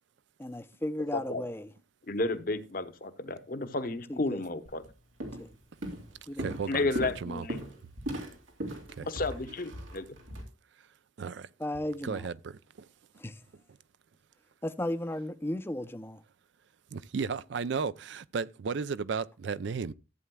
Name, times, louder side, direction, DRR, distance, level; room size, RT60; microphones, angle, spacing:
voice 1, 0.4-1.7 4.1-4.4 5.4-5.5 6.3-6.6 11.6-12.3 13.2-13.4 14.6-16.2, left 1 dB, 10° left, 0.5 m, -35 dB
voice 2, 2.1-4.8 6.7-7.6 9.1-10.1, left 2 dB, 45° left, 0.8 m, -32 dB
Walk footsteps, 4.7-4.9 5.2-5.5 5.8-10.4, right 1 dB, 90° right, 2.8 m, -38 dB
voice 3, 6.4-6.9 7.2-7.4 9.0-9.1 11.2-11.5 12.0-12.9 16.9-19.9, right 5 dB, 65° right, 0.4 m, -34 dB
14.5 x 8.4 x 2.2 m
head